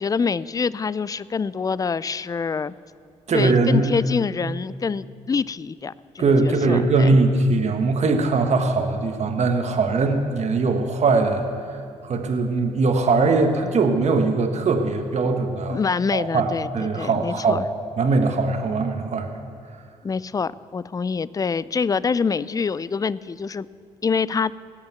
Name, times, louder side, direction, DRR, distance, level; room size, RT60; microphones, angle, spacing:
voice 1, 0.0-2.7 3.3-7.2 15.7-17.6 20.0-23.7 24.0-24.5, left 5 dB, 25° left, 19 dB, 0.4 m, -25 dB
voice 2, 3.3-3.9 6.2-15.8 16.1-17.7 18.0-19.3, right 3 dB, 50° right, 4 dB, 1.5 m, -21 dB
18.0 x 6.9 x 8.2 m, 2.3 s
hypercardioid pair, 50°, 15 cm